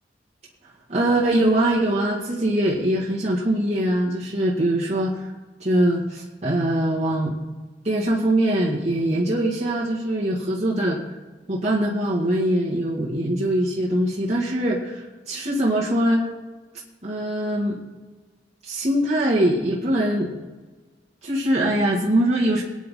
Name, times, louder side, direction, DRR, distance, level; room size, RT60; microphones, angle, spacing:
voice 1, 0.9-5.3 5.6-7.3 7.8-11.1 11.5-16.3 17.0-17.8 18.6-20.3 21.2-22.6, right 1 dB, 40° right, -5 dB, 2.0 m, -22 dB
23.0 x 9.4 x 3.8 m, 1.3 s
head